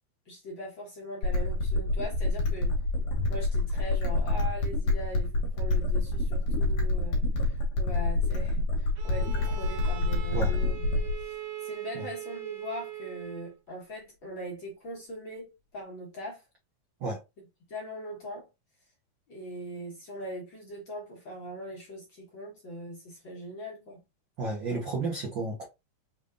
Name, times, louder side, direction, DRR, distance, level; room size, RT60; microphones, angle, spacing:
voice 1, 0.3-2.8 3.3-16.4 17.7-18.5 19.3-24.0, equal, 50° left, 1.7 m, -41 dB
sound 1, 1.2-11.2, left 2 dB, 65° left, 2.2 m, -27 dB
Bowed string instrument, 9.0-13.6, right 12 dB, 90° right, 2.3 m, -41 dB
voice 2, 24.4-25.7, right 3 dB, 65° right, 1.1 m, -32 dB
5.2 x 3.5 x 2.5 m
omnidirectional pair, 3.5 m